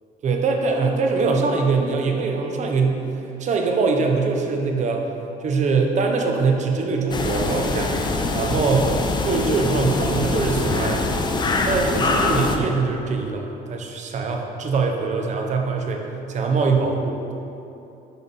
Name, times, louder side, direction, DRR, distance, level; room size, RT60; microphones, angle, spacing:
voice 1, 0.2-3.0 3.4-5.1 5.4-7.9 8.3-8.9 9.2-11.1 11.6-16.0 16.3-17.3, right 4 dB, 45° right, 2 dB, 0.7 m, -22 dB
sound 1, 7.1-12.6, left 3 dB, 25° left, 0.5 m, -23 dB
5.9 x 3.5 x 5.5 m, 2.9 s
cardioid pair, 110°, 17 cm